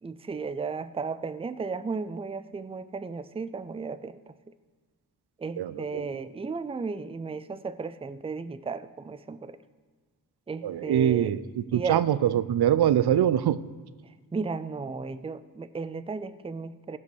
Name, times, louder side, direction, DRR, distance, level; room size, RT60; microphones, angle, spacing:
voice 1, 0.0-4.3 5.4-9.6 10.5-11.4 11.7-12.0 14.3-17.0, right 4 dB, 15° right, 14 dB, 0.4 m, -34 dB
voice 2, 5.6-6.0 10.6-13.6, right 10 dB, 85° right, 15 dB, 0.5 m, -24 dB
15.5 x 5.4 x 6.2 m, 1.5 s
cardioid pair, 65°, 37 cm